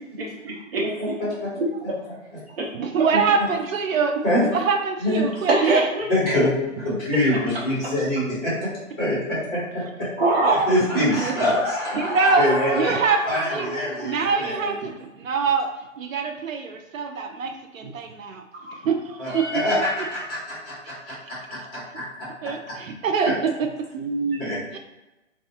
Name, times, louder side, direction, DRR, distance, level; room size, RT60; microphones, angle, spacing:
voice 1, 0.2-1.1 1.6-1.7 2.6-2.7 5.5-6.1 10.2-10.7 14.2-14.3 18.6-18.8 23.9-24.4, right 2 dB, 50° right, -4 dB, 0.9 m, -23 dB
voice 2, 1.0-1.5 3.1-3.2 4.2-4.4 5.0-5.2 6.1-6.5 6.8-8.7 9.0-9.2 9.7-10.1 10.7-14.7 19.2-22.3 22.7-22.8 23.3-23.4 24.4-24.6, left 1 dB, 20° left, -8 dB, 1.0 m, -25 dB
voice 3, 2.7-4.2 4.5-5.9 11.0-11.3 12.0-12.4 12.7-13.7 14.0-15.7 16.0-18.4 18.8-19.5 22.4-23.3 24.7-24.8, right 5 dB, 80° right, 4 dB, 0.5 m, -24 dB
2.3 x 2.3 x 2.8 m, 0.97 s
hypercardioid pair, 155°, 39 cm